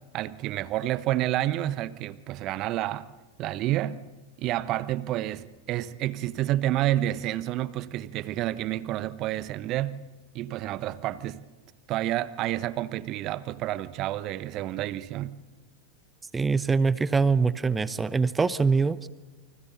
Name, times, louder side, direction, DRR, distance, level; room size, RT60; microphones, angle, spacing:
voice 1, 0.1-3.1 3.4-4.0 4.4-10.0 10.3-11.4 11.9-15.3, right 14 dB, 35° right, 1.0 m, -29 dB
voice 2, 16.3-19.0, right 4 dB, 15° right, 0.8 m, -23 dB
30.0 x 25.0 x 4.0 m
figure-of-eight pair, 90°, 0 cm